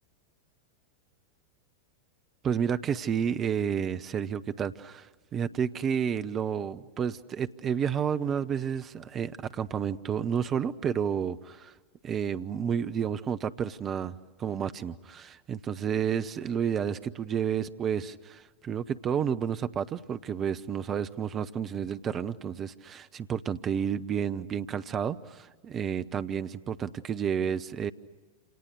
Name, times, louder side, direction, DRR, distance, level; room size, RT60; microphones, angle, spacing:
voice 1, 2.4-11.7 12.0-27.9, right 8 dB, 25° right, 11 dB, 1.0 m, -31 dB
28.5 x 27.5 x 6.5 m, 1.3 s
figure-of-eight pair, 90°, 0 cm